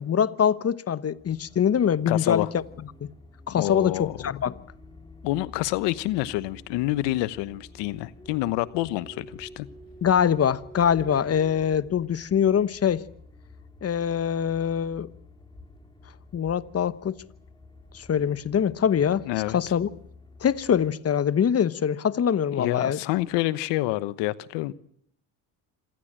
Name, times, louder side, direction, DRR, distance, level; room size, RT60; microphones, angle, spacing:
voice 1, 0.0-2.6 3.0-3.1 3.5-4.6 10.0-13.0 13.8-15.1 16.3-17.1 17.9-19.2 19.5-19.9 20.4-23.0, left 8 dB, 35° left, 1.2 m, -23 dB
sound 1, 1.2-20.9, left 2 dB, 10° left, 5.4 m, -49 dB
voice 2, 2.1-2.5 3.5-4.3 5.2-9.7 19.2-19.6 22.6-24.7, left 17 dB, 80° left, 1.2 m, -27 dB
26.5 x 17.0 x 9.0 m
supercardioid pair, 90°, 42 cm